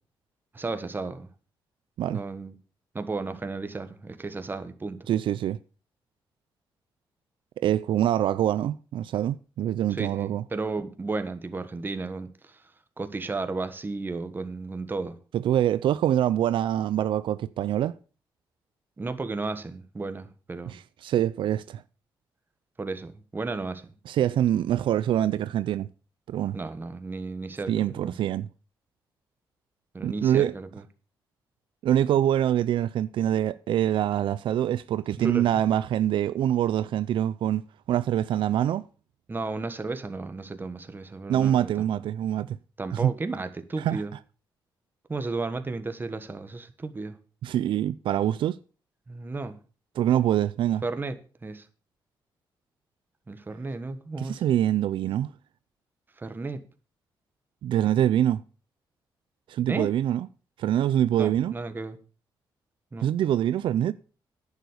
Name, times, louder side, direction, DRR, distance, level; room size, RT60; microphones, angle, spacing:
voice 1, 0.5-1.3 2.1-2.5 2.9-5.1 9.9-12.6 13.0-15.2 19.0-20.8 22.8-23.9 26.5-28.1 29.9-30.7 35.2-35.5 39.3-42.0 42.8-44.1 45.1-47.2 49.1-49.6 50.8-51.2 51.4-51.6 53.3-54.4 56.2-56.6 59.7-59.9 61.1-62.0 62.9-63.1, right 3 dB, 25° right, 1.3 m, -33 dB
voice 2, 5.1-5.6 7.6-10.4 15.3-18.0 20.7-21.8 24.1-25.9 26.3-26.6 27.7-28.5 30.0-30.5 31.8-37.6 37.9-38.9 41.3-42.6 42.9-43.1 43.8-44.0 47.4-48.6 50.0-50.8 54.2-55.3 57.6-58.4 59.5-60.3 60.6-61.5 63.0-63.9, right 11 dB, 75° right, 0.4 m, -25 dB
10.5 x 7.2 x 6.5 m
cardioid pair, 110°, 8 cm